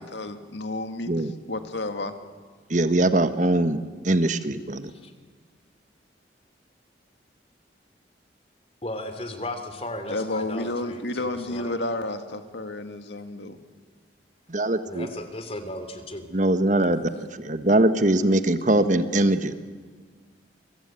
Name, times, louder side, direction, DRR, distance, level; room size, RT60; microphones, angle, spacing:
voice 1, 0.0-2.1 10.1-13.5, left 2 dB, 75° left, 8 dB, 2.0 m, -31 dB
voice 2, 2.7-4.9 14.5-15.1 16.3-17.1 17.4-19.5, right 1 dB, 40° right, 11 dB, 1.3 m, -22 dB
voice 3, 8.8-11.7 14.9-16.2, left 1 dB, 30° left, 9 dB, 2.8 m, -36 dB
27.5 x 24.0 x 8.9 m, 1.5 s
head